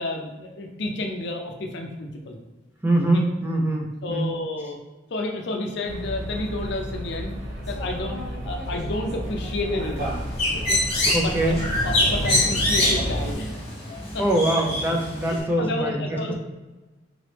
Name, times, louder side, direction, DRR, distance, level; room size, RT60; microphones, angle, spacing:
voice 1, 0.0-2.4 4.0-4.8 5.1-7.4 7.7-10.2 10.5-10.8 11.2-11.5 11.8-13.6 14.1-14.2 15.2-16.3, left 2 dB, 65° left, 3 dB, 0.5 m, -31 dB
voice 2, 2.8-4.3 11.1-11.6 14.2-16.3, right 1 dB, 10° right, 0 dB, 0.5 m, -23 dB
sound 1, 5.8-13.3, equal, 40° right, 1.1 m, -31 dB
Bird, 10.0-15.4, left 1 dB, 35° left, 1.1 m, -25 dB
3.8 x 3.0 x 3.3 m, 1.2 s
head